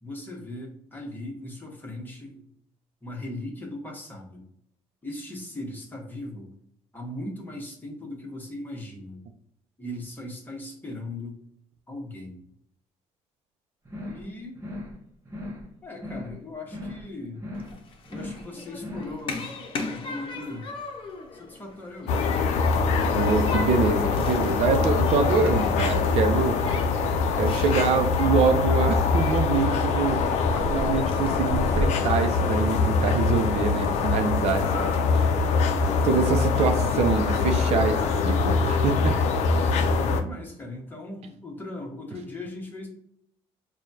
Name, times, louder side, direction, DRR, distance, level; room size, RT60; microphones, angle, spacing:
voice 1, 0.0-2.5 3.0-4.4 5.0-6.5 6.9-9.2 9.8-11.4 11.9-12.4 14.1-14.6 15.8-17.5 18.1-20.7 21.3-22.3 39.9-42.9, left 1 dB, 15° left, -1 dB, 1.2 m, -38 dB
sound 1, 13.8-14.3 14.5-15.0 15.2-15.7 15.9-16.4 16.6-17.1 17.3-17.8 18.0-18.5 18.7-19.2, left 1 dB, 20° right, 1.0 m, -38 dB
Human group actions, 17.5-31.8, left 2 dB, 50° left, 0.8 m, -37 dB
sound 2, 22.1-40.2, left 4 dB, 80° left, 0.5 m, -23 dB
voice 2, 23.1-26.6 27.3-30.3 30.7-35.2 36.0-39.2 39.6-39.8, right 5 dB, 65° right, 6 dB, 0.6 m, -25 dB
4.6 x 2.3 x 2.7 m, 0.73 s
cardioid pair, 120°, 11 cm